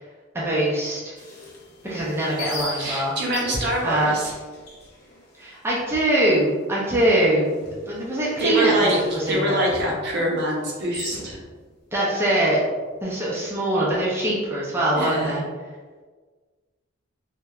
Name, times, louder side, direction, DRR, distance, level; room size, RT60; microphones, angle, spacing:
voice 1, 0.3-1.1 1.8-3.1 3.8-4.1 5.4-7.6 7.9-9.6 11.9-12.6 13.0-15.4, right 1 dB, 10° right, -7 dB, 0.4 m, -23 dB
sound 1, 1.2-6.1 6.3-6.4 6.9-7.3 7.6-11.7, left 2 dB, 50° left, 0.6 m, -39 dB
voice 2, 2.8-4.3 8.4-11.4 15.0-15.4, right 1 dB, 55° right, -2 dB, 0.6 m, -24 dB
2.8 x 2.1 x 2.3 m, 1.4 s
head